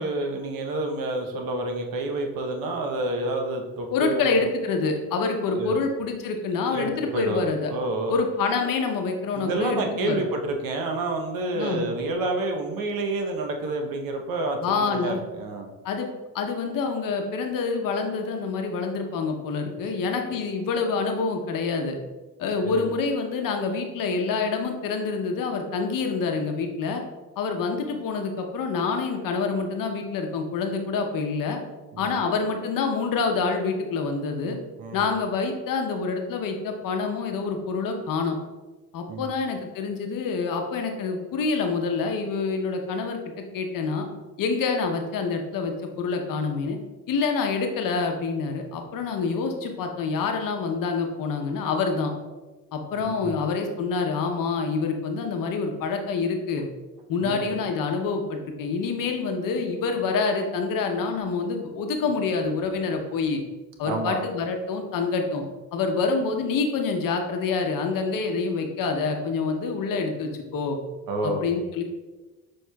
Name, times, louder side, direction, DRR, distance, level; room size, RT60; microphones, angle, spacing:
voice 1, 0.0-4.4 5.5-5.8 6.5-8.1 9.3-15.7 22.6-22.9 31.9-32.2 34.8-35.1 39.1-39.3 53.0-53.4 57.2-57.5 63.9-64.2 71.1-71.6, right 2 dB, 65° right, 3 dB, 0.8 m, -29 dB
voice 2, 3.9-7.7 8.1-10.2 11.5-11.9 14.6-15.2 15.8-16.1 16.3-22.0 22.4-27.0 27.4-31.6 32.0-34.6 34.9-38.4 38.9-43.2 43.5-44.1 44.4-46.8 47.1-52.1 52.7-56.6 57.1-63.4 63.8-65.4 65.7-70.8 71.2-71.8, left 4 dB, 60° left, 4 dB, 0.8 m, -27 dB
6.3 x 3.1 x 2.2 m, 1.2 s
supercardioid pair, 75°, 37 cm